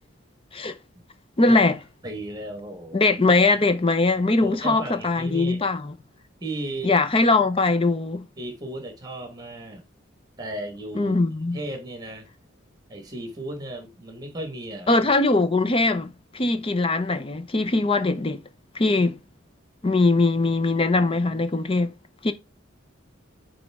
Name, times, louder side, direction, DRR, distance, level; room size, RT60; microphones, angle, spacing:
voice 1, 1.4-1.8 2.9-5.9 6.8-8.3 11.0-11.6 14.9-18.4 18.7-19.2 19.8-21.9 22.2-22.3, left 3 dB, 25° left, 0.6 m, -21 dB
voice 2, 2.0-3.0 4.2-5.6 6.4-6.9 8.4-9.8 10.4-11.1 11.5-12.3 12.9-15.0, right 1 dB, 20° right, 1.6 m, -35 dB
9.3 x 3.4 x 3.6 m
head